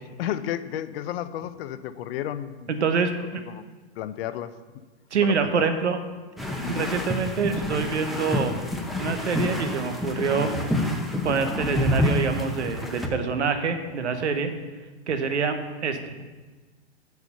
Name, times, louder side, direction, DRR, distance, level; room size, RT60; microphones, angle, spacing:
voice 1, 0.2-2.8 3.5-3.6 4.0-4.5 5.4-5.7 6.6-6.9, left 11 dB, 60° left, 13 dB, 0.6 m, -32 dB
voice 2, 2.7-3.4 5.1-6.0 6.7-8.7 9.0-10.5 11.2-14.5 15.1-16.0, right 5 dB, 90° right, 8 dB, 0.9 m, -26 dB
sound 1, 6.4-13.1, left 1 dB, ahead, 0.7 m, -28 dB
6.5 x 4.9 x 6.6 m, 1.3 s
hypercardioid pair, 115°, 33 cm